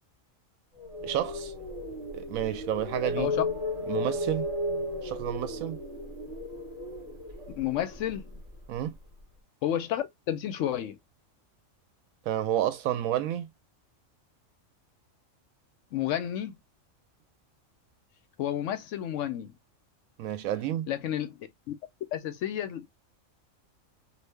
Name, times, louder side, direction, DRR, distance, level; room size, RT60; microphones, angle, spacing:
sound 1, 0.8-8.8, left 1 dB, 55° right, 1.5 m, -34 dB
voice 1, 1.0-1.5 2.1-3.3 3.9-4.5 5.0-5.8 8.7-9.0 12.3-13.5 20.2-20.9, right 11 dB, 85° right, 1.0 m, -30 dB
voice 2, 7.6-8.3 9.6-11.0 15.9-16.5 18.4-19.5 20.9-21.7 22.1-22.9, left 11 dB, 70° left, 0.9 m, -31 dB
2.7 x 2.4 x 3.3 m
omnidirectional pair, 1.4 m